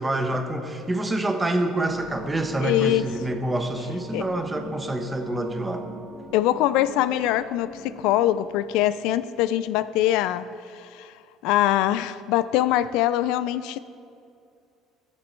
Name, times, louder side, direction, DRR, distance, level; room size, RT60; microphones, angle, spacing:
voice 1, 0.0-5.8, right 1 dB, 15° right, 6 dB, 0.9 m, -27 dB
sound 1, 1.8-9.2, equal, 15° left, 2.2 m, -42 dB
voice 2, 2.6-3.1 4.1-4.3 6.3-10.5 10.8-11.1 11.4-13.8, left 13 dB, 80° left, 15 dB, 0.3 m, -23 dB
13.5 x 7.6 x 4.5 m, 2.5 s
cardioid pair, 120°, 0 cm